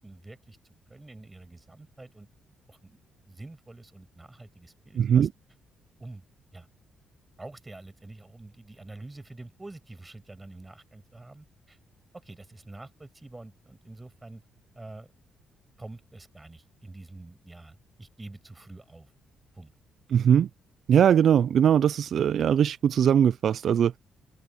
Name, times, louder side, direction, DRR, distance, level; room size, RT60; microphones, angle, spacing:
voice 1, 0.0-2.3 2.7-3.0 3.3-5.3 6.0-6.2 6.5-6.7 7.4-11.8 12.1-14.4 14.7-15.1 15.8-19.1 19.5-19.7, right 2 dB, 15° right, 7.3 m, -46 dB
voice 2, 5.0-5.3 20.1-20.5 20.9-24.0, right 8 dB, 60° right, 0.3 m, -21 dB
open air
cardioid pair, 90°, 0 cm